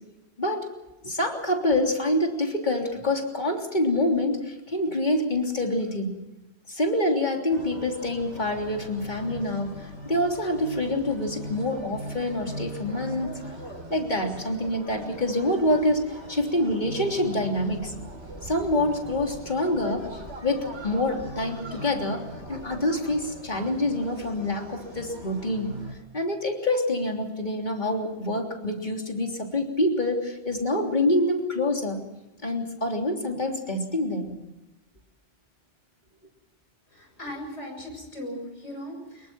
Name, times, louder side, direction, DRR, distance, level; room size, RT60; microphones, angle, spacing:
voice 1, 0.4-6.2 6.7-13.3 13.9-17.9 18.4-25.7 26.1-32.0 32.4-34.4, left 1 dB, 40° left, 2 dB, 3.5 m, -26 dB
sound 1, 7.5-25.9, right 1 dB, 85° right, 5.3 m, -40 dB
voice 2, 36.9-39.3, equal, 85° left, 3 dB, 7.4 m, -38 dB
25.0 x 22.0 x 5.8 m, 1.0 s
omnidirectional pair, 1.2 m